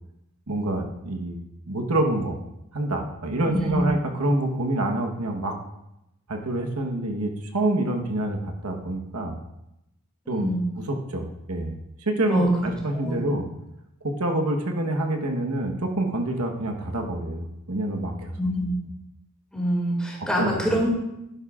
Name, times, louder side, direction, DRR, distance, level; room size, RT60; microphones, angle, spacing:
voice 1, 0.5-1.4 1.7-2.4 2.7-5.6 6.3-9.4 10.3-13.5 14.0-18.3 20.4-20.6, right 1 dB, 85° right, 3 dB, 1.2 m, -27 dB
voice 2, 3.4-3.9 10.3-10.6 12.3-13.2 18.4-18.8 19.5-20.9, equal, 5° left, -3 dB, 2.3 m, -25 dB
11.5 x 11.0 x 2.5 m, 0.87 s
head